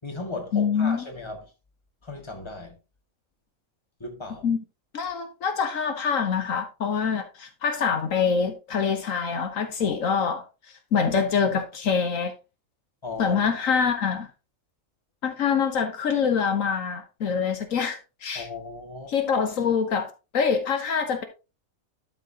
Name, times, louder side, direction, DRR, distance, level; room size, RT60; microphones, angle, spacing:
voice 1, 0.0-1.5 2.0-2.8 4.0-4.5 13.0-13.4 18.3-19.1, left 3 dB, 20° left, 1.9 m, -36 dB
voice 2, 0.5-1.1 4.4-4.6 4.9-10.4 10.9-12.3 13.2-14.3 15.2-18.5 19.1-21.2, left 6 dB, 75° left, 1.4 m, -25 dB
12.0 x 5.8 x 2.8 m
omnidirectional pair, 1.4 m